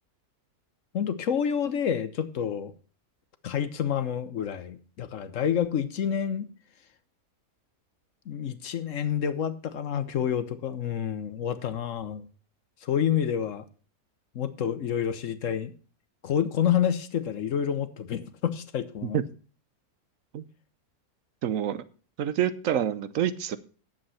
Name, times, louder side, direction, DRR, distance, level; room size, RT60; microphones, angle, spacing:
voice 1, 0.9-2.7 3.4-6.5 8.3-12.3 12.8-13.6 14.3-15.7 16.2-19.2, left 8 dB, 65° left, 13 dB, 1.1 m, -28 dB
voice 2, 21.4-21.8 22.2-23.6, right 10 dB, 65° right, 14 dB, 1.1 m, -27 dB
10.5 x 7.6 x 5.7 m, 0.39 s
omnidirectional pair, 1.6 m